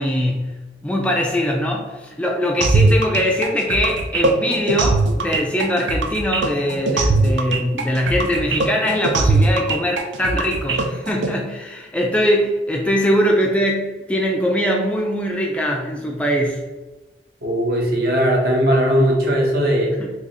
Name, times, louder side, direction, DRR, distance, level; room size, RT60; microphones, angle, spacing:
voice 1, 0.0-16.6 20.0-20.1, equal, 5° left, -1 dB, 0.3 m, -22 dB
sound 1, 2.6-11.3, right 3 dB, 90° right, 0.4 m, -20 dB
voice 2, 17.4-20.0, equal, 60° right, -1 dB, 0.8 m, -18 dB
3.0 x 2.4 x 4.1 m, 1.2 s
head